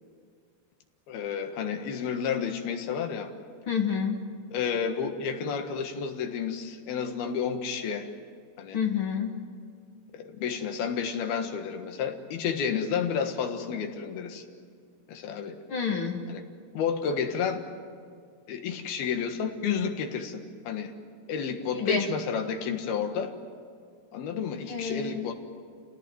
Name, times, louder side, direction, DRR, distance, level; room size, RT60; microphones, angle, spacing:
voice 1, 1.1-3.3 4.5-8.1 8.6-8.8 10.1-14.4 15.1-15.6 16.3-16.4 16.7-17.6 18.5-20.9 21.3-23.3 24.1-25.3, left 6 dB, 75° left, 6 dB, 3.4 m, -31 dB
voice 2, 3.7-4.2 8.7-9.3 15.7-16.2 21.7-22.1 24.6-25.3, left 6 dB, 50° left, 3 dB, 1.7 m, -29 dB
28.0 x 18.5 x 9.4 m, 2.1 s
omnidirectional pair, 4.6 m